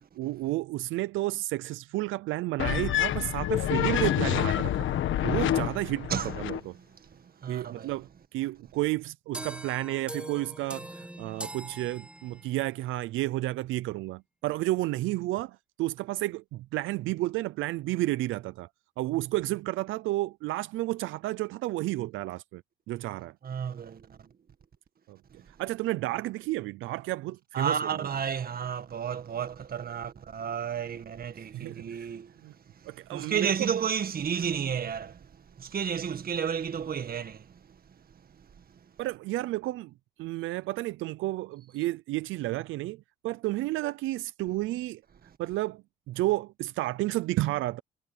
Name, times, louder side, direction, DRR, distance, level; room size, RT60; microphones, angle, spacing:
voice 1, 0.1-4.9 5.2-6.8 7.5-18.7 19.0-22.6 22.9-23.3 25.1-25.2 25.6-28.1 31.4-32.1 32.4-32.5 32.9-33.5 39.0-39.9 40.2-45.0 45.4-47.8, right 17 dB, 90° right, 0.5 m, -31 dB
sound 1, 2.6-6.6, left 12 dB, 75° left, 1.6 m, -27 dB
voice 2, 7.1-7.9 23.4-24.3 27.5-32.3 32.8-35.3 35.6-37.6, right 7 dB, 50° right, 1.8 m, -32 dB
sound 2, 9.3-12.6, right 1 dB, 5° right, 1.7 m, -42 dB
cardioid pair, 90°, 20 cm